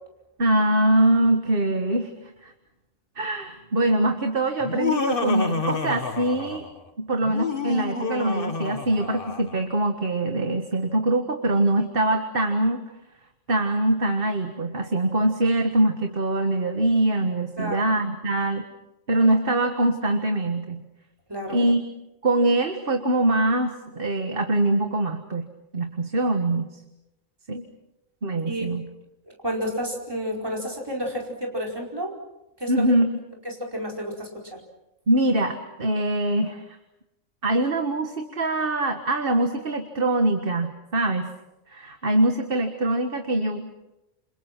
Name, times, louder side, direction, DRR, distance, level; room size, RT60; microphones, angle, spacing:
voice 1, 0.4-2.1 2.4-2.5 3.2-6.6 7.0-12.8 13.5-18.6 19.1-20.8 21.5-21.8 22.2-25.5 25.7-26.8 27.5-27.6 28.2-28.9 32.7-33.2 35.1-36.6 37.4-41.3 41.7-43.7, right 1 dB, 45° right, 6 dB, 1.8 m, -23 dB
Laughter, 4.6-6.8 7.2-9.6, left 4 dB, 40° left, 1.7 m, -29 dB
voice 2, 29.3-32.1 32.6-32.9 33.4-34.6, equal, 15° right, -1 dB, 4.9 m, -31 dB
29.0 x 28.0 x 6.1 m, 0.92 s
omnidirectional pair, 1.4 m